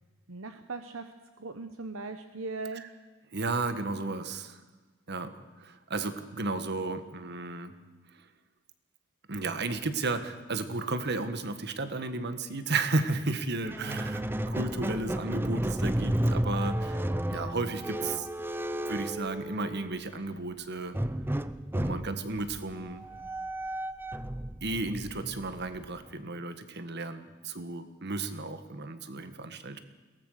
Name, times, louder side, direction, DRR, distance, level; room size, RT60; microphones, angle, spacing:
voice 1, 0.3-2.9, right 3 dB, 70° right, 8 dB, 1.0 m, -39 dB
voice 2, 3.3-4.6 5.1-5.3 5.6-7.7 8.1-8.3 9.3-14.2 14.5-18.3 18.9-21.0 21.7-23.1 24.6-29.8, right 3 dB, 55° right, 10 dB, 1.5 m, -33 dB
Squeak, 13.6-20.0 20.9-26.1, right 1 dB, 10° right, 0.6 m, -33 dB
22.5 x 18.0 x 6.6 m, 1.3 s
head